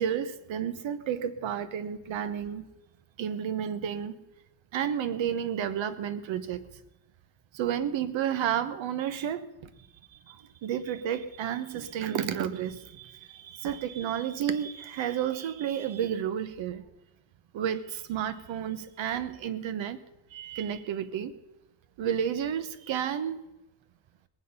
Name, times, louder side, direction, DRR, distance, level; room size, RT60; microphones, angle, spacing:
voice 1, 0.0-2.7 3.2-4.1 4.7-6.7 7.5-9.5 9.8-9.9 10.1-16.8 17.5-20.0 20.3-21.3 22.0-23.4, right 9 dB, 85° right, 12 dB, 1.2 m, -31 dB
20.0 x 9.3 x 5.6 m, 0.94 s
cardioid pair, 165°, 45 cm